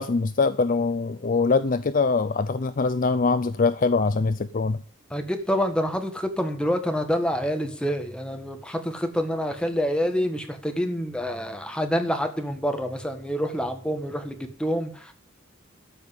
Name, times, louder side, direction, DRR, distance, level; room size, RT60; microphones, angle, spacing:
voice 1, 0.0-4.8, left 4 dB, 40° left, 0.4 m, -23 dB
voice 2, 5.1-15.1, equal, 5° left, 1.5 m, -27 dB
13.0 x 5.4 x 8.0 m
head